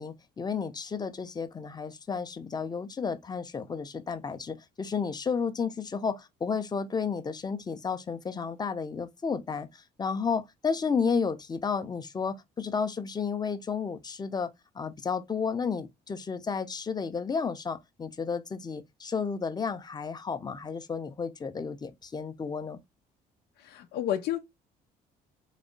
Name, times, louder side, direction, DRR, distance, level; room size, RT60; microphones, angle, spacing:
voice 1, 0.0-22.8, left 5 dB, 25° left, 0.8 m, -32 dB
voice 2, 23.6-24.4, left 11 dB, 80° left, 0.9 m, -30 dB
4.2 x 3.2 x 3.9 m
cardioid pair, 110°, 17 cm